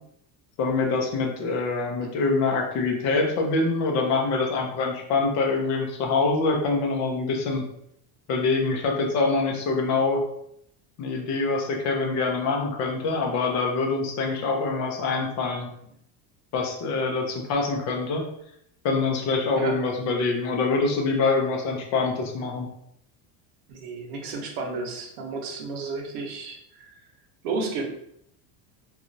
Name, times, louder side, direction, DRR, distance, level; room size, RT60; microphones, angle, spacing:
voice 1, 0.6-7.6 8.3-10.2 11.0-15.7 16.5-18.3 18.8-22.7, left 3 dB, 40° left, 1 dB, 0.5 m, -25 dB
voice 2, 23.7-27.0 27.4-27.9, right 3 dB, 85° right, 2 dB, 0.8 m, -32 dB
2.9 x 2.3 x 2.6 m, 0.74 s
cardioid pair, 170°, 43 cm